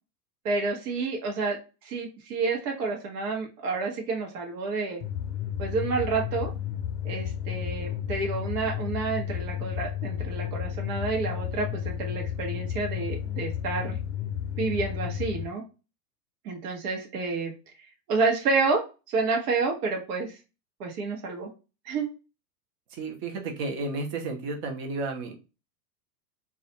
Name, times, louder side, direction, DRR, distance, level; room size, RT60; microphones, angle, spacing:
voice 1, 0.4-1.6 1.8-5.0 5.6-6.5 7.0-14.0 14.6-15.6 16.4-17.5 18.1-18.8 19.1-20.3 20.8-21.5 21.8-22.1, right 4 dB, 70° right, 1 dB, 0.9 m, -29 dB
sound 1, 5.0-15.5, left 10 dB, 55° left, 0.7 m, -32 dB
voice 2, 22.9-25.4, right 3 dB, 30° right, 3 dB, 0.5 m, -32 dB
2.3 x 2.1 x 2.8 m, 0.30 s
supercardioid pair, 140°, 48 cm